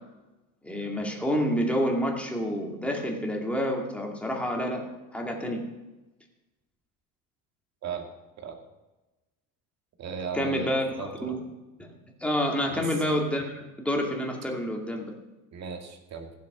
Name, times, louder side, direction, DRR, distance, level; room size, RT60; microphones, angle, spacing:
voice 1, 0.6-4.8 5.1-5.6 10.3-11.4 11.8-11.9 12.2-15.1, equal, 5° left, 0 dB, 2.3 m, -28 dB
voice 2, 10.0-11.4 12.7-12.9 15.5-16.3, right 5 dB, 45° right, 4 dB, 2.3 m, -36 dB
15.0 x 8.1 x 6.1 m, 1.1 s
cardioid pair, 130°, 36 cm